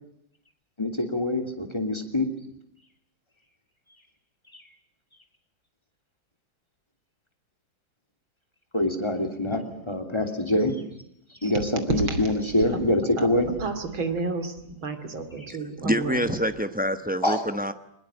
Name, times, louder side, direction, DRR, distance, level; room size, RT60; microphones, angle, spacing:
voice 1, 0.8-2.3 8.7-10.8 11.4-13.5 15.4-15.5 17.2-17.4, left 1 dB, 15° left, 7 dB, 3.0 m, -25 dB
voice 2, 11.9-12.2 13.2-13.3 13.6-16.3, right 3 dB, 80° right, 9 dB, 3.5 m, -30 dB
voice 3, 15.8-17.7, equal, 10° right, 9 dB, 0.4 m, -26 dB
23.5 x 21.0 x 9.0 m, 0.74 s
omnidirectional pair, 2.2 m